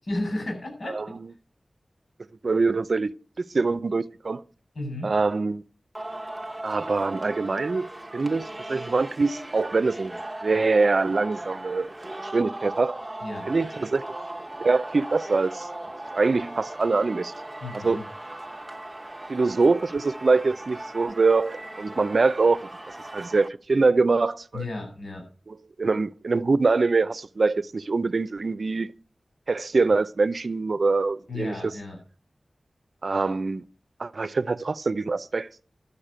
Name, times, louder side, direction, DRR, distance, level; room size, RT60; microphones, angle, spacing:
voice 1, 0.0-0.9 4.7-5.1 13.2-13.5 17.6-18.0 24.5-25.2 31.3-32.0, left 2 dB, 70° left, 7.6 m, -33 dB
voice 2, 2.4-4.4 5.0-5.6 6.6-11.9 12.2-13.0 13.5-14.0 14.6-15.7 16.1-17.3 17.7-18.0 19.3-22.7 23.1-24.6 25.5-28.9 29.5-31.5 33.0-33.6 34.0-35.5, right 3 dB, 65° right, 0.6 m, -24 dB
Singing, 6.0-23.5, right 1 dB, 25° right, 1.0 m, -38 dB
12.5 x 6.6 x 8.8 m
wide cardioid pair, 60°, 0 cm